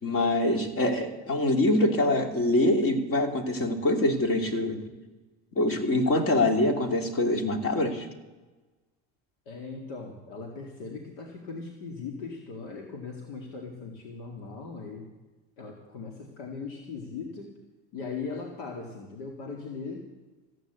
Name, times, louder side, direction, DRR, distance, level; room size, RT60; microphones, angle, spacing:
voice 1, 0.0-4.8 5.5-8.1, left 1 dB, 40° left, 4 dB, 2.7 m, -24 dB
voice 2, 9.5-15.1 15.6-17.5 17.9-20.1, left 4 dB, 80° left, 1 dB, 2.3 m, -39 dB
15.0 x 9.0 x 8.1 m, 1.2 s
supercardioid pair, 105°, 33 cm